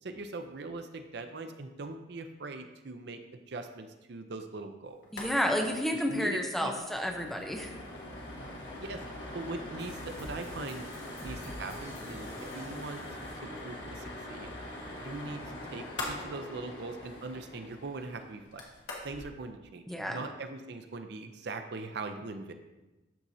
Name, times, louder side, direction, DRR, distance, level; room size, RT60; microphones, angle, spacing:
voice 1, 0.0-5.0 6.1-6.7 8.8-9.0 9.3-10.9 11.2-13.1 13.4-14.5 15.0-15.4 15.7-18.6 19.0-22.5, right 3 dB, 60° right, 7 dB, 0.5 m, -41 dB
sound 1, 5.0-5.3 5.6-5.7 6.0-6.2 6.6-19.3, left 1 dB, 70° left, 1.5 m, -42 dB
voice 2, 5.1-7.8 19.9-20.2, equal, ahead, 2 dB, 0.6 m, -31 dB
sound 2, 9.8-13.9, equal, 25° left, 2.4 m, -48 dB
12.0 x 4.2 x 2.7 m, 1.1 s
head